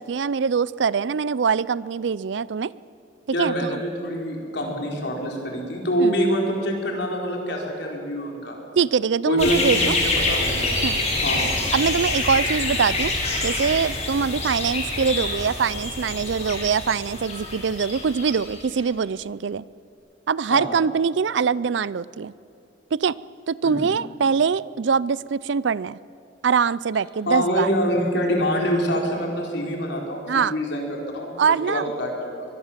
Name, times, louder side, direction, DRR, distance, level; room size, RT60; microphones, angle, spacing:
voice 1, 0.0-2.7 3.4-3.8 6.0-6.1 8.8-10.0 10.8-11.0 11.7-13.1 13.4-19.6 20.3-22.3 22.9-23.2 23.5-26.0 26.4-27.7 30.3-30.5 31.4-31.9, right 6 dB, 65° right, 20 dB, 0.5 m, -23 dB
voice 2, 3.3-8.6 9.2-10.8 11.1-11.6 20.5-20.7 23.6-23.9 27.3-32.4, equal, 65° left, 0 dB, 4.7 m, -26 dB
sound 1, 9.4-18.7, left 2 dB, 35° left, 4.7 m, -26 dB
23.5 x 21.0 x 7.5 m, 2.6 s
head